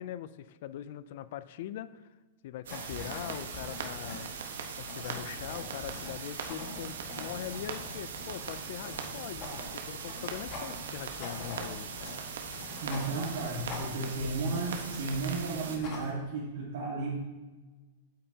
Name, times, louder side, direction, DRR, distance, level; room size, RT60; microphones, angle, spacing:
voice 1, 0.0-2.1 2.4-4.3 4.8-11.9, left 12 dB, 45° left, 15 dB, 0.3 m, -42 dB
sound 1, 2.6-16.1, left 2 dB, 30° left, 1.6 m, -45 dB
sound 2, 2.7-15.8, right 6 dB, 80° right, 1.1 m, -40 dB
voice 2, 12.8-17.1, right 3 dB, 55° right, -5 dB, 1.6 m, -34 dB
8.9 x 8.6 x 2.8 m, 1.3 s
supercardioid pair, 170°, 0 cm